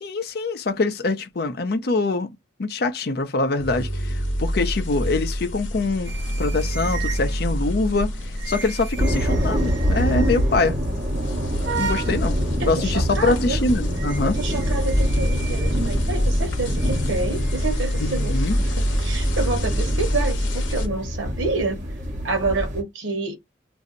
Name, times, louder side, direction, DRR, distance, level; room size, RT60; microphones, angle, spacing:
voice 1, 0.0-2.3 2.6-6.1 6.4-8.1 8.5-10.8 11.7-14.4 18.0-18.5, left 3 dB, 55° left, 0.5 m, -24 dB
sound 1, 3.6-20.9, equal, 90° left, 0.8 m, -27 dB
sound 2, 6.0-20.9, right 5 dB, 65° right, 0.5 m, -39 dB
sound 3, 9.0-22.8, equal, 45° right, 1.1 m, -25 dB
voice 2, 12.6-13.6 14.2-21.9 22.2-23.4, right 3 dB, 90° right, 1.0 m, -28 dB
2.6 x 2.0 x 3.7 m
head